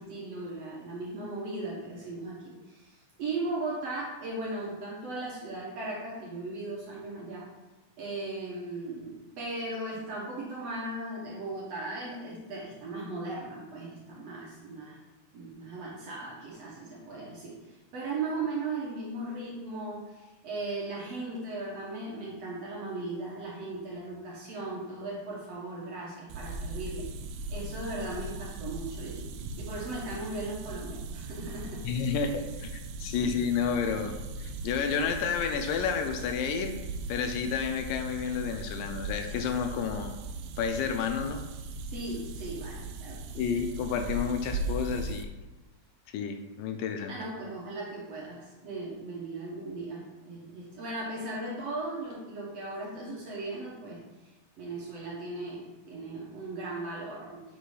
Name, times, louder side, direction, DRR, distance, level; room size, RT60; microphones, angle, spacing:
voice 1, 0.0-7.5 8.0-15.0 15.3-27.1 27.5-29.3 29.6-31.8 33.0-33.4 41.8-43.7 47.1-54.0 54.6-57.4, right 2 dB, 60° right, -5 dB, 1.7 m, -37 dB
sound 1, 26.3-45.2, right 2 dB, 80° right, 2.2 m, -39 dB
voice 2, 31.8-32.7 33.0-36.8 37.1-40.1 40.6-41.4 43.4-45.3 46.1-47.2, left 6 dB, 80° left, 6 dB, 2.0 m, -30 dB
7.3 x 3.9 x 4.9 m, 1.1 s
omnidirectional pair, 4.4 m